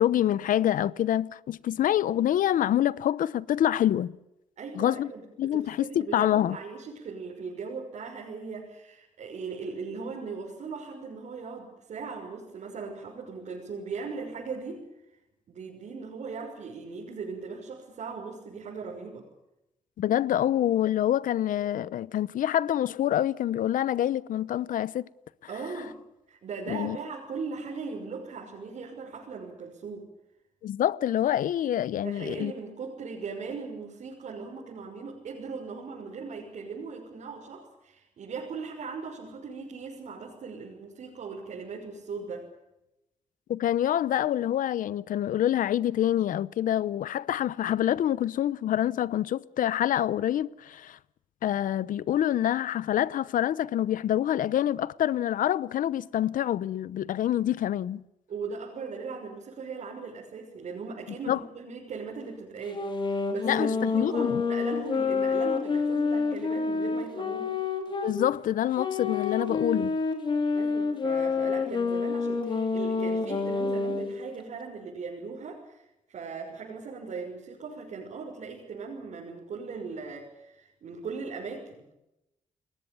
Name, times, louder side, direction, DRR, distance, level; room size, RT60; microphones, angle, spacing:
voice 1, 0.0-4.1 4.7-5.1 5.4-6.6 20.0-25.1 26.7-27.0 30.6-32.5 43.5-51.0 51.4-58.0 61.3-61.4 63.4-64.4 68.0-70.0, left 11 dB, 75° left, 0.9 m, -26 dB
voice 2, 4.6-14.8 15.5-19.2 25.5-26.0 26.3-30.1 32.0-42.5 58.3-67.5 70.5-81.9, right 4 dB, 55° right, 6.1 m, -39 dB
Sax Alto - G minor, 62.7-68.1 68.8-74.1, left 4 dB, 35° left, 3.7 m, -28 dB
30.0 x 21.5 x 7.1 m
wide cardioid pair, 160°, 14 cm